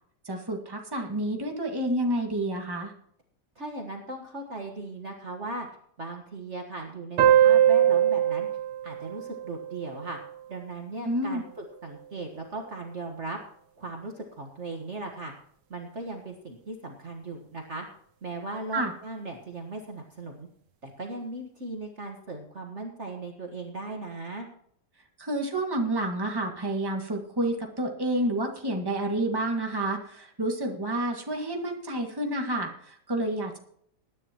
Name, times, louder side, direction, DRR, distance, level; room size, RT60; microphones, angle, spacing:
voice 1, 0.3-2.9 11.0-11.4 18.7-18.9 25.2-33.6, right 1 dB, 15° right, 1 dB, 1.9 m, -29 dB
voice 2, 3.6-5.7 6.0-8.5 8.8-10.2 10.5-13.4 13.8-15.3 15.7-17.9 18.2-20.5 20.8-24.5, right 2 dB, 40° right, 2 dB, 1.7 m, -38 dB
sound 1, 7.2-10.3, right 10 dB, 75° right, 1.6 m, -22 dB
21.0 x 10.5 x 3.0 m, 0.66 s
omnidirectional pair, 1.9 m